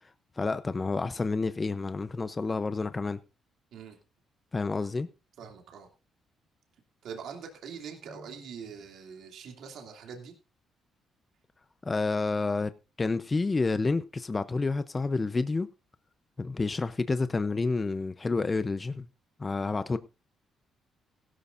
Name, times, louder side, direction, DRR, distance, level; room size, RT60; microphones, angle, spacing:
voice 1, 0.4-3.2 4.5-5.1 11.8-12.7 13.0-15.7 16.4-19.1 19.4-20.0, left 3 dB, 25° left, 0.7 m, -29 dB
voice 2, 5.4-5.9 7.0-10.3, right 6 dB, 75° right, 2.7 m, -43 dB
16.5 x 12.5 x 2.6 m
cardioid pair, 90°, 0 cm